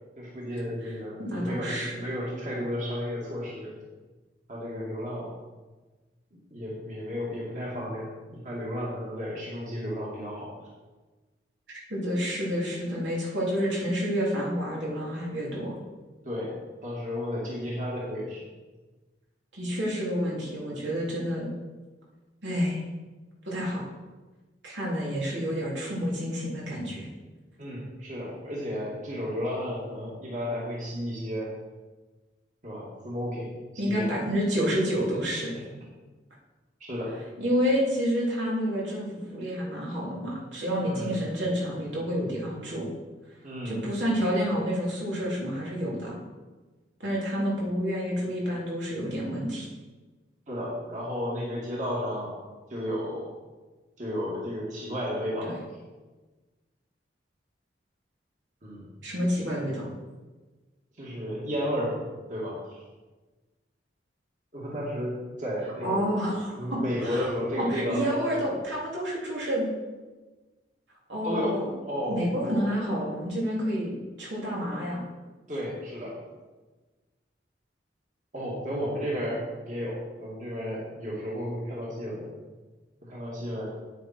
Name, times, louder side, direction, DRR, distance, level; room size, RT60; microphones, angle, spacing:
voice 1, 0.2-3.7 4.5-5.3 6.3-10.5 16.2-16.5 16.8-18.5 27.6-31.5 32.6-33.5 33.8-34.2 36.8-37.2 40.8-41.2 43.4-43.8 50.5-52.3 52.7-53.3 54.0-55.5 58.6-58.9 61.0-62.0 62.3-62.8 64.5-66.1 66.5-68.2 71.2-71.6 71.8-72.8 75.5-76.2 78.3-82.3 83.0-83.6, equal, 45° right, -5 dB, 2.4 m, -33 dB
voice 2, 1.2-2.0 11.7-15.7 19.5-21.5 22.4-22.8 23.4-23.9 24.6-27.1 33.8-35.6 37.4-42.9 43.6-46.2 47.0-49.7 55.4-55.6 59.0-59.9 65.8-67.3 67.7-69.7 71.1-71.7 72.1-75.0, equal, 80° right, -5 dB, 3.2 m, -29 dB
9.2 x 8.8 x 4.5 m, 1.3 s
head